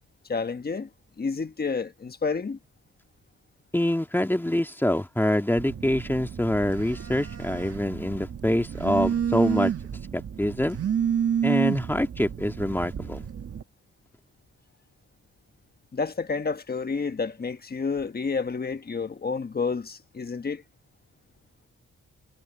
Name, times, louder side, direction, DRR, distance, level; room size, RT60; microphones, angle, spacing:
voice 1, 0.3-0.9 1.2-2.6 15.9-20.6, left 4 dB, 30° left, 1.4 m, -30 dB
voice 2, 3.7-9.7 10.1-10.8 11.4-13.3, left 1 dB, 5° left, 2.2 m, -25 dB
Telephone, 5.6-13.6, right 8 dB, 55° right, 1.4 m, -30 dB
wide cardioid pair, 125°, 29 cm